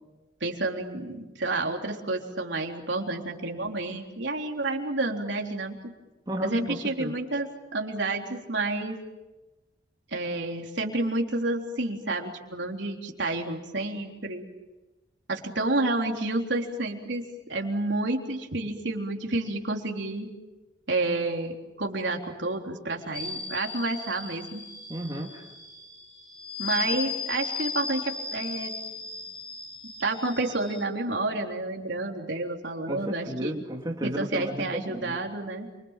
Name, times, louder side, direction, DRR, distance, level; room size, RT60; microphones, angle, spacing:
voice 1, 0.4-5.7 6.4-9.0 10.1-14.5 15.3-20.3 20.9-21.5 21.8-24.6 26.6-28.8 30.0-33.5 34.0-35.7, right 2 dB, 75° right, 1 dB, 3.7 m, -30 dB
voice 2, 6.3-7.1 24.9-25.4 32.9-35.2, equal, 20° right, 0 dB, 2.2 m, -33 dB
sound 1, 23.1-30.8, left 4 dB, 30° left, 5.7 m, -36 dB
29.0 x 25.5 x 7.5 m, 1.1 s
head